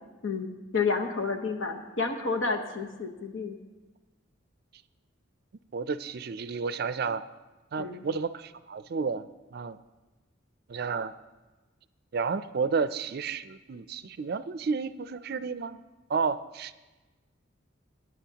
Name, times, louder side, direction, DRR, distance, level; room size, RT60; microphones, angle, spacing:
voice 1, 0.2-3.6 7.8-8.0, left 4 dB, 80° left, 4 dB, 1.2 m, -30 dB
voice 2, 5.7-7.3 7.7-9.8 10.7-11.1 12.1-15.8 16.1-16.7, right 5 dB, 50° right, 13 dB, 0.4 m, -31 dB
21.5 x 9.8 x 2.9 m, 1.2 s
head